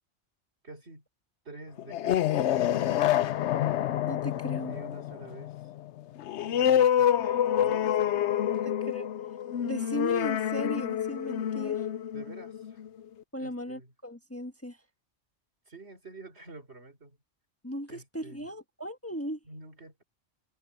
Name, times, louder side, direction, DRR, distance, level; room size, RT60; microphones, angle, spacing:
voice 1, 0.6-1.0 1.4-3.2 4.4-5.6 6.6-8.8 12.1-12.8 13.4-13.9 15.7-17.2 17.9-18.5 19.4-20.0, right 2 dB, 70° right, 4.2 m, -48 dB
sound 1, 1.8-13.0, left 10 dB, 85° left, 0.9 m, -27 dB
voice 2, 4.1-4.8 8.9-9.1 9.6-11.9 13.3-14.8 17.6-19.4, equal, 10° left, 1.5 m, -37 dB
omnidirectional pair, 1.2 m